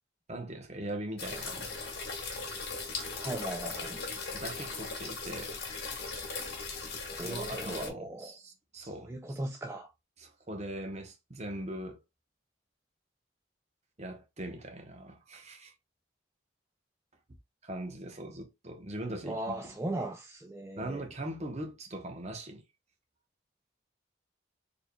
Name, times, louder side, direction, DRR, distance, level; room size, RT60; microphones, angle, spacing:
voice 1, 0.3-1.7 4.3-5.6 7.2-9.4 10.2-12.0 14.0-15.7 17.6-19.5 20.8-22.6, right 1 dB, 35° right, 0.9 m, -40 dB
sound 1, 1.2-7.9, left 4 dB, 55° left, 1.3 m, -38 dB
voice 2, 3.2-4.0 7.2-8.3 8.8-9.9 19.2-21.0, right 1 dB, 15° right, 0.4 m, -38 dB
4.5 x 3.5 x 2.2 m
head